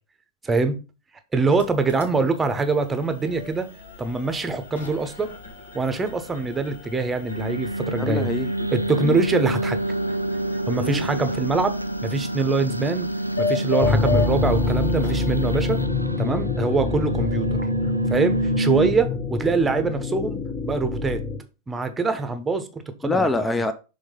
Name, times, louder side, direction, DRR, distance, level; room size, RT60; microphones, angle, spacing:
voice 1, 0.4-0.8 1.3-3.7 4.0-5.3 5.7-8.3 8.7-9.8 10.7-11.7 12.0-13.1 13.4-15.8 16.2-17.6 18.1-21.2 21.7-23.3, right 4 dB, 15° right, 1.0 m, -24 dB
sound 1, 1.4-15.9, left 4 dB, 70° left, 1.6 m, -35 dB
sound 2, 7.3-18.9, right 1 dB, 85° right, 0.3 m, -27 dB
voice 2, 8.0-8.7 9.0-9.2 10.8-11.1 23.0-23.7, left 2 dB, 10° left, 0.6 m, -25 dB
sound 3, 13.8-21.4, left 4 dB, 25° left, 1.1 m, -26 dB
6.3 x 3.6 x 5.2 m
figure-of-eight pair, 90°, 0 cm